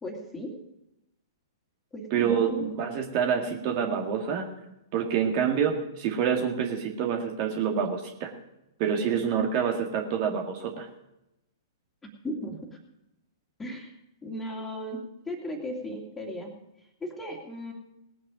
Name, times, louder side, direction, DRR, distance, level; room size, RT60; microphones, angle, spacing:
voice 1, 0.0-0.5 1.9-2.6 12.2-12.8 13.6-13.9 14.2-15.0 15.3-16.5 17.0-17.7, equal, 10° left, 1 dB, 2.6 m, -36 dB
voice 2, 2.1-4.5 4.9-8.3 8.8-10.9, right 7 dB, 40° right, 2 dB, 1.9 m, -27 dB
19.5 x 8.8 x 5.1 m, 0.88 s
figure-of-eight pair, 110°, 2 cm